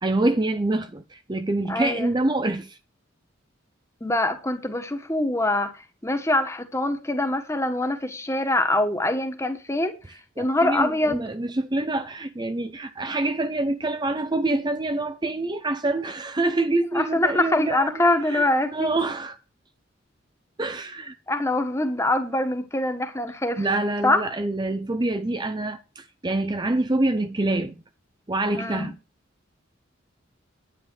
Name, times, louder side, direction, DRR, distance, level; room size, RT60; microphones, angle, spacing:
voice 1, 0.0-2.8 10.4-17.9 18.2-19.4 20.6-21.1 23.6-27.8 28.3-29.0, right 2 dB, 20° right, 0.6 m, -26 dB
voice 2, 1.7-2.1 4.0-5.7 6.0-9.9 10.4-11.2 16.9-18.9 21.3-23.6 24.0-24.2 28.5-28.9, left 1 dB, 15° left, 1.6 m, -24 dB
10.0 x 10.0 x 4.7 m
head